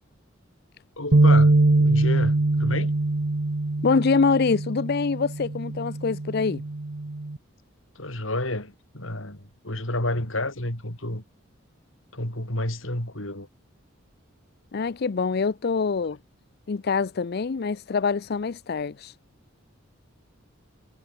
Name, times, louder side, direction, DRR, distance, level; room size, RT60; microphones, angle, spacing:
voice 1, 1.0-2.9 7.9-11.2 12.1-13.5, left 1 dB, 75° left, 6.1 m, -30 dB
sound 1, 1.1-7.4, right 2 dB, 60° right, 1.0 m, -22 dB
voice 2, 3.8-6.6 14.7-16.2 16.7-19.1, left 5 dB, 50° left, 0.5 m, -25 dB
head